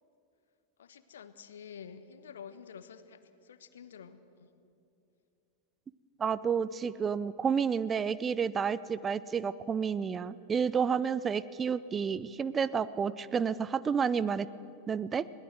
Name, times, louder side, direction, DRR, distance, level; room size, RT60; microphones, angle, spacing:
voice 1, 0.8-4.5, left 7 dB, 65° left, 12 dB, 1.1 m, -49 dB
voice 2, 6.2-14.5 14.9-15.3, right 6 dB, 20° right, 17 dB, 0.5 m, -30 dB
21.5 x 18.0 x 7.8 m, 2.6 s
figure-of-eight pair, 90°, 0 cm